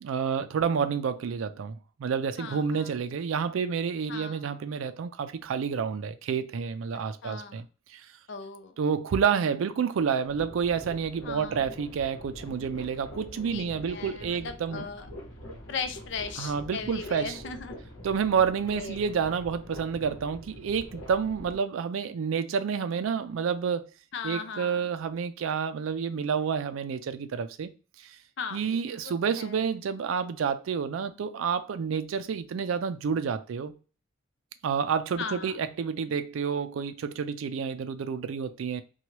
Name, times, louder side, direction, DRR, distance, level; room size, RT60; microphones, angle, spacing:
voice 1, 0.0-7.6 7.9-8.0 8.8-14.8 16.4-17.4 18.0-23.9 24.2-27.7 28.0-28.2 28.5-33.7 34.6-38.8, right 6 dB, 80° right, 0.4 m, -29 dB
voice 2, 2.4-2.9 4.1-4.5 7.2-7.6 8.3-8.8 11.2-11.6 13.5-15.1 15.7-17.8 18.7-19.0 24.1-24.9 28.4-28.6 29.0-29.6 35.2-35.5, left 5 dB, 60° left, 0.5 m, -38 dB
sound 1, 10.2-21.6, equal, 75° left, 0.9 m, -45 dB
2.9 x 2.3 x 2.9 m
head